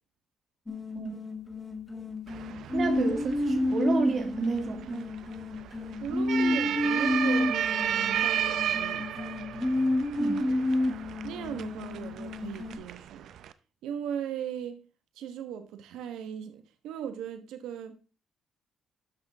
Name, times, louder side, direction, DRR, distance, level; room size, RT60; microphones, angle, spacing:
sound 1, 0.7-12.7, left 2 dB, 20° left, 2.0 m, -30 dB
sound 2, 2.3-13.5, right 10 dB, 75° right, 0.6 m, -34 dB
voice 1, 2.7-3.2 3.5-5.1 10.2-10.5, right 4 dB, 50° right, 1.9 m, -30 dB
voice 2, 6.0-9.1 11.2-13.3 13.8-14.8 15.2-17.9, right 8 dB, 90° right, 1.3 m, -38 dB
12.0 x 6.0 x 3.6 m
cardioid pair, 90°, 0 cm